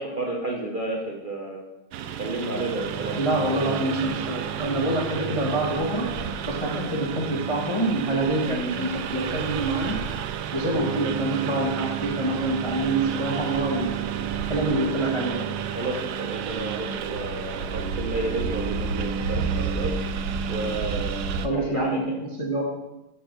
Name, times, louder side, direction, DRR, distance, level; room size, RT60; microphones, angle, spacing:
voice 1, 0.0-1.6 2.2-3.2 15.7-20.0 20.5-22.2, right 2 dB, 60° right, -2 dB, 0.5 m, -31 dB
Engine, 1.9-21.5, right 7 dB, 80° right, 0.9 m, -30 dB
voice 2, 3.1-6.1 6.5-10.0 10.5-14.2 14.5-15.5 21.4-22.6, right 2 dB, 20° left, -3 dB, 0.9 m, -26 dB
6.8 x 4.4 x 6.6 m, 0.96 s
omnidirectional pair, 2.2 m